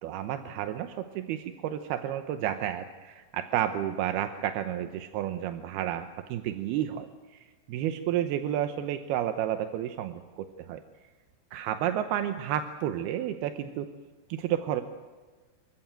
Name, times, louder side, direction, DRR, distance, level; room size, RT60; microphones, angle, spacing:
voice 1, 0.0-7.1 7.3-10.8 11.5-13.9 14.3-14.8, right 11 dB, 75° right, 8 dB, 2.5 m, -31 dB
27.5 x 15.0 x 9.1 m, 1.4 s
omnidirectional pair, 5.3 m